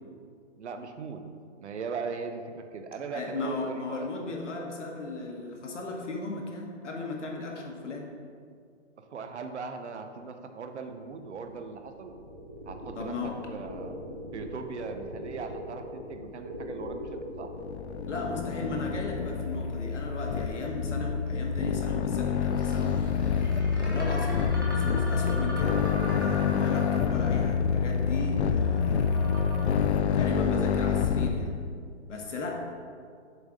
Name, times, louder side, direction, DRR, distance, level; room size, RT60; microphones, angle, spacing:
voice 1, 0.6-1.3 1.6-4.1 9.0-12.2 12.6-13.2 13.5-14.0 14.3-17.0 17.4-17.5, right 5 dB, 70° right, 7 dB, 0.8 m, -39 dB
voice 2, 3.1-8.1 12.9-13.4 18.1-23.0 23.8-24.5 24.7-25.8 26.2-29.7 30.1-31.6 32.1-32.6, left 2 dB, 80° left, 0 dB, 1.5 m, -36 dB
sound 1, 10.8-20.7 22.0-29.7, equal, 20° right, 0.4 m, -41 dB
sound 2, 17.4-31.3, left 6 dB, 65° left, 0.5 m, -27 dB
6.9 x 4.0 x 4.8 m, 2.2 s
hypercardioid pair, 175°, 36 cm